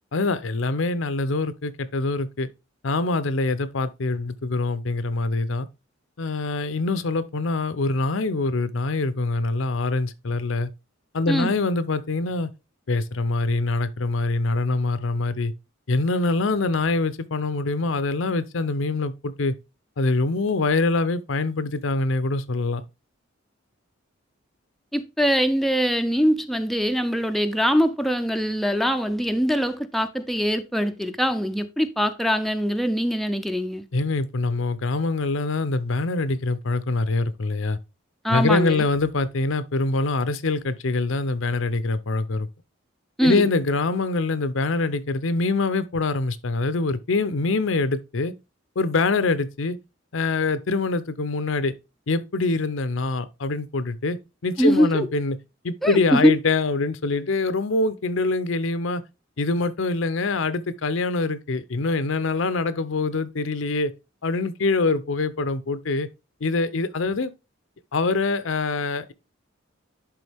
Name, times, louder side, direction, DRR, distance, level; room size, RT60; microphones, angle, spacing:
voice 1, 0.1-2.5 2.8-5.7 6.2-10.7 11.1-12.5 12.9-15.5 15.9-19.5 20.0-22.8 33.9-37.8 38.3-42.5 43.2-48.3 48.8-49.8 50.1-51.7 52.1-55.4 55.6-59.0 59.4-63.9 64.2-66.1 66.4-67.3 67.9-69.1, left 3 dB, 80° left, 0.7 m, -24 dB
voice 2, 24.9-33.9 38.2-38.8 43.2-43.5 54.6-55.1 55.8-56.2, equal, ahead, 0.5 m, -23 dB
10.5 x 3.8 x 3.4 m
head